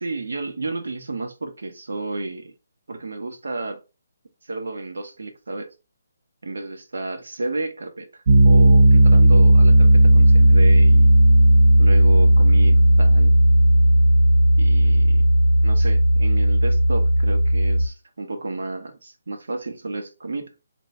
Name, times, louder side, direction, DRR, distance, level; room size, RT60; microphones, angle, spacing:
voice 1, 0.0-2.5 2.9-3.8 4.5-5.7 6.4-11.1 11.8-13.3 14.6-15.2 15.6-20.5, right 2 dB, 80° right, 0.8 m, -31 dB
Piano, 8.3-17.9, right 1 dB, 50° right, 0.4 m, -14 dB
2.8 x 2.6 x 3.2 m
hypercardioid pair, 150°, 0 cm